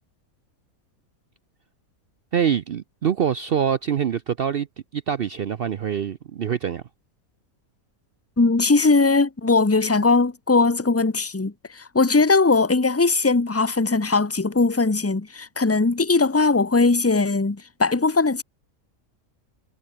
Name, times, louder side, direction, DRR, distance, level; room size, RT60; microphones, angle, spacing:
voice 1, 2.3-4.7 4.9-6.8, right 8 dB, 55° right, 0.6 m, -24 dB
voice 2, 8.4-18.4, left 3 dB, 15° left, 0.7 m, -20 dB
omnidirectional pair, 1.6 m